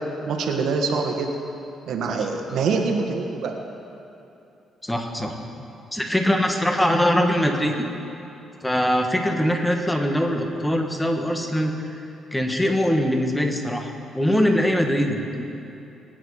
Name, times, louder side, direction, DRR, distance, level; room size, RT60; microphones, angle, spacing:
voice 1, 0.2-1.3 1.9-3.5, right 4 dB, 75° right, 3 dB, 1.7 m, -24 dB
voice 2, 4.8-5.4 5.9-7.7 8.6-11.7 12.3-15.4, equal, 10° left, 3 dB, 1.7 m, -22 dB
22.0 x 9.3 x 5.0 m, 2.8 s
cardioid pair, 90°, 0 cm